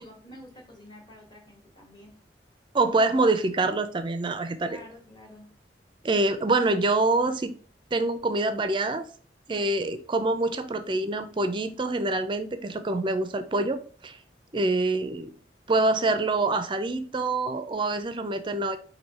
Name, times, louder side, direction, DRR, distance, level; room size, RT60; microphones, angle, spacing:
voice 1, 0.0-2.2 4.6-5.6, left 1 dB, 25° left, 1.2 m, -48 dB
voice 2, 2.7-4.8 6.0-7.5 7.9-9.1 9.5-14.2 14.5-15.3 15.7-18.8, right 2 dB, 25° right, 0.4 m, -25 dB
4.7 x 2.7 x 4.1 m
head